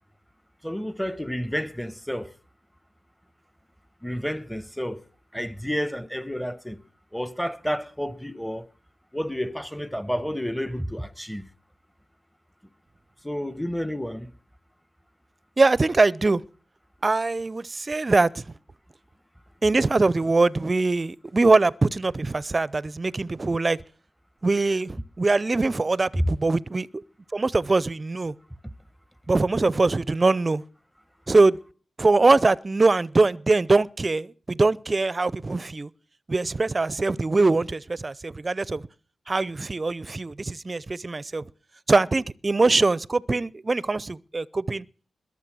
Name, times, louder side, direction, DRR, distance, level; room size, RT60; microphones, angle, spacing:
voice 1, 0.6-2.3 4.0-5.0 5.3-6.8 7.1-8.7 9.1-11.5 13.2-14.3 26.1-26.3, equal, 5° left, 1.1 m, -30 dB
voice 2, 15.6-16.4 17.0-18.4 19.6-23.8 24.4-27.0 27.3-28.3 29.3-30.6 31.3-31.6 32.0-35.9 36.3-38.9 39.3-41.4 41.9-44.9, right 3 dB, 40° right, 0.6 m, -22 dB
21.5 x 7.4 x 6.2 m
supercardioid pair, 45°, 0 cm